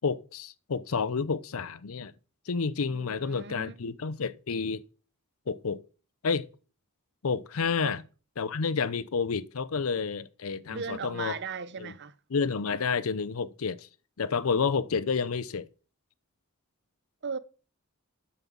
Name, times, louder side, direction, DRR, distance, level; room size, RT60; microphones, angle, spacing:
voice 1, 0.0-2.1 2.5-4.8 5.5-5.8 6.2-6.5 7.2-8.0 8.4-11.4 11.8-11.9 12.3-13.9 14.2-15.7, left 5 dB, 70° left, 0.6 m, -30 dB
voice 2, 2.9-3.9 7.8-8.0 10.7-12.1 17.2-17.4, right 5 dB, 50° right, 0.7 m, -38 dB
9.6 x 5.4 x 7.3 m
head